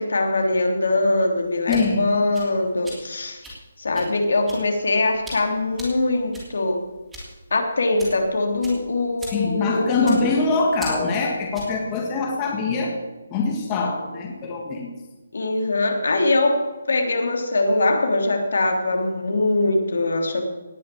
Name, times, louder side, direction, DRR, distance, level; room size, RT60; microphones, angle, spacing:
voice 1, 0.0-3.4 3.8-6.8 7.5-10.3 15.3-20.4, left 2 dB, 70° left, 4 dB, 3.1 m, -22 dB
sound 1, 1.4-11.8, equal, 5° right, 3.0 m, -41 dB
voice 2, 1.7-2.1 9.3-12.9 13.3-14.9, left 4 dB, 15° left, 0 dB, 1.7 m, -23 dB
18.5 x 6.6 x 8.5 m, 1.2 s
hypercardioid pair, 175°, 0 cm